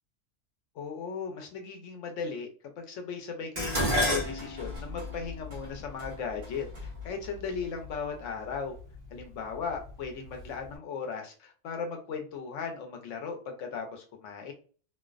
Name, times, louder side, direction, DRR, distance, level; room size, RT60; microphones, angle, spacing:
voice 1, 0.8-2.5 2.8-8.7 9.1-14.5, left 5 dB, 80° left, 3 dB, 1.0 m, -37 dB
Dishes pots and pans, 3.6-7.9 8.8-9.2 9.6-10.4 10.7-10.8, left 1 dB, 50° right, 0.9 m, -32 dB
2.5 x 2.1 x 2.3 m, 0.40 s
omnidirectional pair, 1.3 m